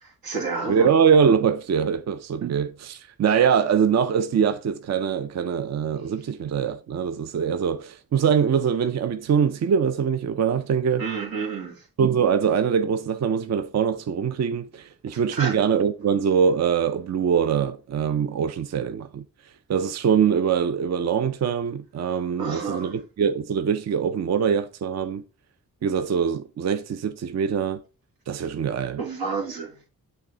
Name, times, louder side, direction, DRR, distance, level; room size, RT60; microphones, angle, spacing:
voice 1, 0.0-0.9 11.0-11.8 15.1-15.5 22.4-22.9 29.0-29.9, right 4 dB, 85° right, 1.7 m, -30 dB
voice 2, 0.7-11.0 12.0-19.2 19.7-25.2 25.8-27.8 28.3-29.0, right 7 dB, 50° right, 0.5 m, -23 dB
6.4 x 3.4 x 4.9 m
cardioid pair, 65°, 35 cm